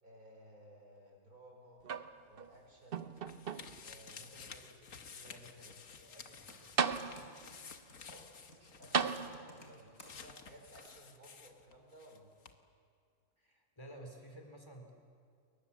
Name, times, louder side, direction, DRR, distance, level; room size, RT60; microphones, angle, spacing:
voice 1, 0.0-1.8 2.3-3.1 3.8-4.8 5.1-5.8 8.6-12.3, equal, 75° right, 0 dB, 5.9 m, -58 dB
sound 1, 1.8-2.5 2.9-3.9 4.6-4.7 6.3-6.4 6.8-7.5 8.9-9.8 10.9-11.0, right 6 dB, 45° right, 0.9 m, -36 dB
sound 2, 2.5-12.2 12.4-12.5, left 6 dB, 60° left, 1.6 m, -53 dB
voice 2, 4.1-5.7 6.0-6.7 13.4-14.9, right 1 dB, 15° left, 3 dB, 3.8 m, -55 dB
Computer keyboard, 5.9-6.0 6.5-10.5 10.7-10.9, left 2 dB, 75° left, 4.4 m, -57 dB
29.5 x 23.0 x 7.2 m, 2.2 s
omnidirectional pair, 1.6 m